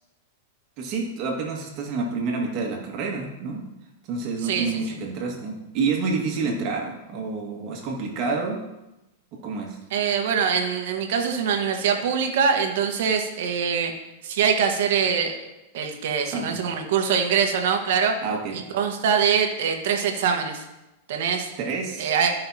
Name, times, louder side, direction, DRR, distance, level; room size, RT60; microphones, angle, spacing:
voice 1, 0.8-3.6 4.1-8.6 9.4-9.8 16.2-16.6 18.2-18.6 21.6-22.1, right 4 dB, 40° right, 0 dB, 1.8 m, -28 dB
voice 2, 9.9-13.9 14.2-15.5 15.7-18.1 18.5-20.6 21.1-21.5 22.0-22.3, right 7 dB, 70° right, 4 dB, 1.3 m, -23 dB
13.0 x 5.6 x 2.8 m, 0.97 s
supercardioid pair, 145°, 0 cm